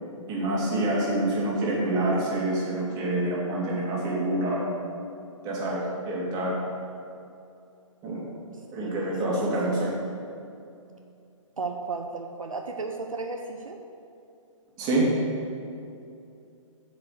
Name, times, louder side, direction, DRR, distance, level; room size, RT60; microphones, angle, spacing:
voice 1, 0.3-4.7 5.4-6.5 8.0-8.2 8.7-9.9 14.8-15.1, right 1 dB, 25° right, -5 dB, 2.3 m, -27 dB
voice 2, 8.8-9.8 11.6-13.8, right 4 dB, 80° right, 3 dB, 0.7 m, -35 dB
7.9 x 5.3 x 6.5 m, 2.6 s
figure-of-eight pair, 125°, 17 cm